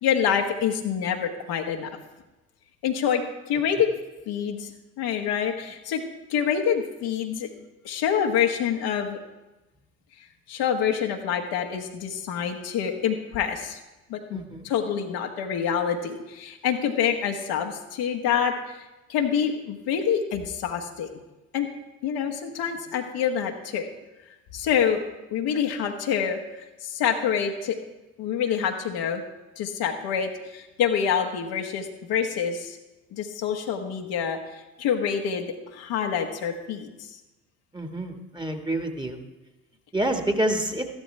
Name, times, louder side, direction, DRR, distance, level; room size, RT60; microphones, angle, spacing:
voice 1, 0.0-1.9 2.8-3.9 4.3-4.7 5.0-6.0 6.3-7.5 7.8-9.2 10.5-13.8 14.1-21.1 21.5-21.7 22.0-23.9 24.5-25.0 25.3-26.4 26.8-27.8 28.2-29.2 29.6-32.8 33.1-35.5 35.7-37.1, left 8 dB, 60° left, 3 dB, 1.4 m, -26 dB
voice 2, 14.3-14.7 37.7-39.2 39.9-40.9, right 1 dB, 10° right, 5 dB, 1.6 m, -27 dB
13.5 x 12.0 x 3.3 m, 1.0 s
figure-of-eight pair, 50°, 42 cm